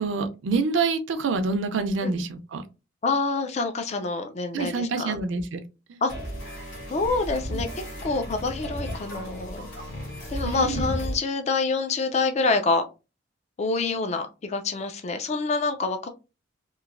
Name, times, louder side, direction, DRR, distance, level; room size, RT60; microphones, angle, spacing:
voice 1, 0.0-2.6 4.5-5.6 5.9-6.0 10.3-10.9, right 4 dB, 70° right, 0.4 m, -27 dB
voice 2, 3.0-5.2 6.0-6.1 6.9-7.7 8.0-9.7 10.3-12.8 13.6-16.1, left 3 dB, 35° left, 0.3 m, -26 dB
sound 1, 6.1-11.1, equal, 75° left, 1.6 m, -34 dB
3.0 x 2.5 x 2.4 m
head